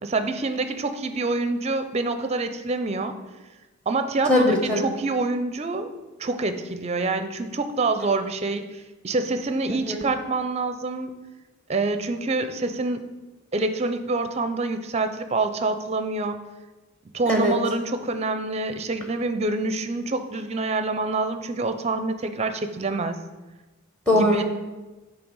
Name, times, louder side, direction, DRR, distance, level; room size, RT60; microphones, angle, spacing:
voice 1, 0.0-3.1 3.9-4.5 4.8-5.9 6.2-11.1 11.7-13.1 13.5-16.4 17.1-23.2 24.1-24.4, right 3 dB, 30° right, 9 dB, 0.5 m, -26 dB
voice 2, 4.3-4.8 9.9-10.0 17.3-17.5 24.1-24.4, left 1 dB, 5° left, 2 dB, 0.8 m, -20 dB
8.9 x 3.3 x 6.3 m, 1.2 s
head